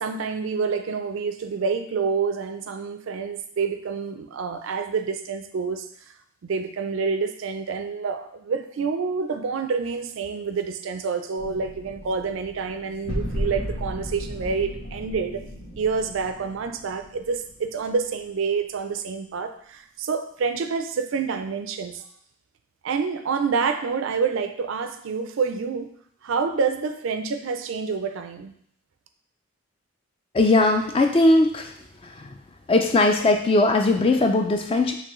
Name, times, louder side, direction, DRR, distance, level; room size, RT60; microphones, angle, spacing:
voice 1, 0.0-5.9 6.4-15.4 15.8-22.0 22.8-25.9 26.2-28.5, right 5 dB, 65° right, 8 dB, 0.4 m, -27 dB
sound 1, 11.3-18.2, equal, 80° left, 1.3 m, -35 dB
voice 2, 30.3-31.7 32.7-34.9, left 2 dB, 25° left, 5 dB, 0.3 m, -19 dB
5.8 x 2.7 x 3.0 m, 0.65 s
head